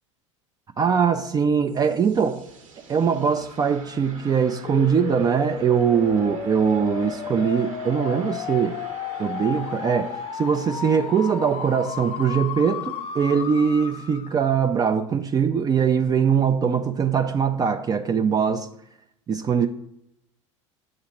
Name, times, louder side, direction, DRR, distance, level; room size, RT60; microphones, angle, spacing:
voice 1, 0.8-2.4 2.9-8.8 9.2-18.7 19.3-19.7, right 7 dB, 25° right, 0.4 m, -22 dB
sound 1, 1.4-14.0, right 4 dB, 85° right, 1.3 m, -46 dB
sound 2, 4.7-14.5, left 8 dB, 35° left, 0.5 m, -33 dB
7.6 x 2.9 x 5.8 m
hypercardioid pair, 85°, 16 cm